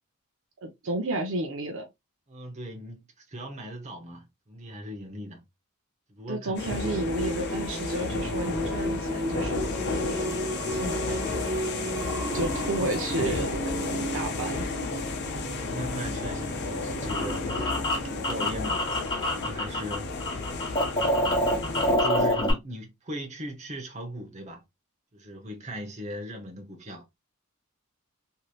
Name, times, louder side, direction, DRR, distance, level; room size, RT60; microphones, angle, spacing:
voice 1, 0.6-1.8 6.3-9.6 9.9-10.3 10.6-11.2 12.3-14.7, right 2 dB, 65° right, 0.6 m, -32 dB
voice 2, 2.3-5.4 6.1-6.8 15.4-18.9 19.3-20.1 21.1-24.6 25.1-27.0, equal, 35° right, 0.9 m, -39 dB
sound 1, 6.6-22.0, left 3 dB, 55° left, 0.7 m, -32 dB
Singing, 6.8-18.6, right 1 dB, 15° right, 0.4 m, -35 dB
sound 2, 16.6-19.9 20.2-22.5, left 1 dB, 25° left, 1.3 m, -27 dB
3.1 x 2.8 x 2.3 m
head